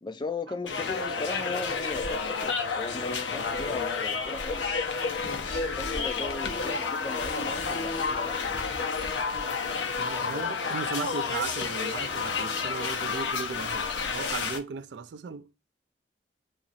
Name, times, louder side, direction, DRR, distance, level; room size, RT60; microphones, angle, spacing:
voice 1, 0.0-4.7 5.5-9.0, left 3 dB, 25° left, 0.3 m, -37 dB
sound 1, 0.7-14.6, left 5 dB, 80° left, 0.7 m, -30 dB
voice 2, 10.0-15.5, right 5 dB, 70° right, 0.4 m, -36 dB
2.9 x 2.4 x 3.9 m
head